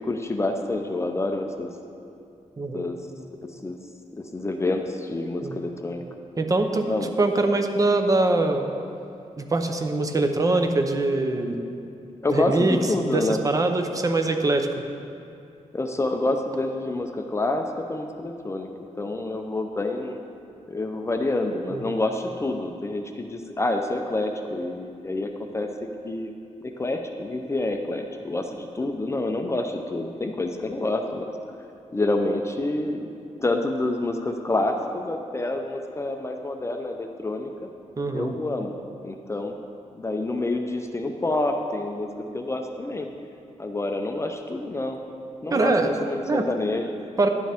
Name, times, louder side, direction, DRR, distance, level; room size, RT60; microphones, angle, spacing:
voice 1, 0.0-1.7 2.7-3.0 3.6-3.8 4.2-6.0 6.9-7.1 12.2-13.4 15.7-20.2 20.7-26.3 26.8-31.3 31.9-33.1 33.4-37.7 38.1-39.5 39.9-43.1 43.6-45.0 45.4-47.0, left 2 dB, 20° left, 4 dB, 0.5 m, -28 dB
voice 2, 6.4-6.9 7.2-8.6 9.4-11.6 12.3-14.7 21.7-22.0 38.0-38.3 45.5-45.9 46.3-46.5 47.2-47.3, right 2 dB, 30° right, 5 dB, 0.7 m, -23 dB
11.0 x 8.9 x 3.5 m, 2.6 s
wide cardioid pair, 140°, 12 cm